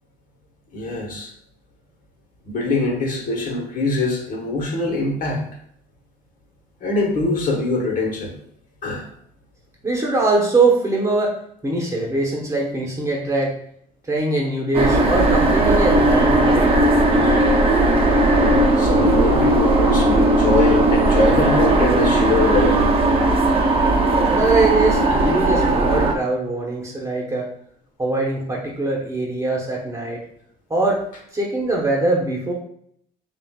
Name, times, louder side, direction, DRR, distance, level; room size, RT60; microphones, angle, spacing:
voice 1, 0.7-1.3 2.4-5.4 6.8-8.3 8.8-9.1 18.3-22.9, left 2 dB, 55° left, 0 dB, 1.3 m, -23 dB
voice 2, 9.8-11.4 11.6-13.5 14.1-16.7 24.2-27.5 28.0-30.2 30.7-31.0 31.3-32.5, right 2 dB, 15° right, -2 dB, 1.2 m, -22 dB
sound 1, 14.7-26.1, right 2 dB, 35° right, 0.7 m, -17 dB
6.8 x 2.6 x 2.4 m, 0.68 s
cardioid pair, 110°, 17 cm